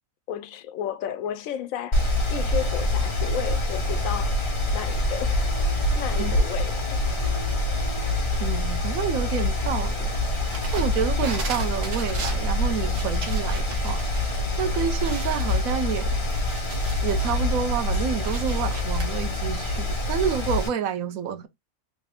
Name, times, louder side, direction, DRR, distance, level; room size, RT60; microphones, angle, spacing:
voice 1, 0.3-4.3 4.7-7.0, left 10 dB, 80° left, 1.0 m, -33 dB
Mechanical fan, 1.9-20.7, left 1 dB, 25° left, 0.8 m, -25 dB
sound 1, 5.3-6.7 7.0-8.6, right 1 dB, 40° right, 0.7 m, -44 dB
voice 2, 8.4-10.1 10.7-14.0 14.6-16.2 17.0-21.5, right 8 dB, 90° right, 1.1 m, -29 dB
sound 2, 10.3-14.3 14.6-14.7 15.0-17.2 17.7-19.1, right 1 dB, 70° right, 1.4 m, -36 dB
3.2 x 2.5 x 3.4 m
omnidirectional pair, 1.4 m